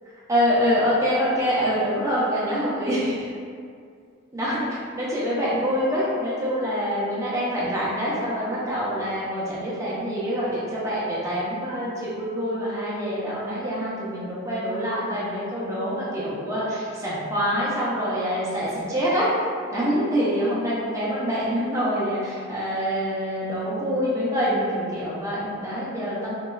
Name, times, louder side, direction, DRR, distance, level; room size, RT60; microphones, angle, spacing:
voice 1, 0.3-3.3 4.3-4.6 4.9-19.3 19.7-26.3, equal, 15° right, -8 dB, 0.5 m, -25 dB
2.9 x 2.2 x 2.3 m, 2.3 s
head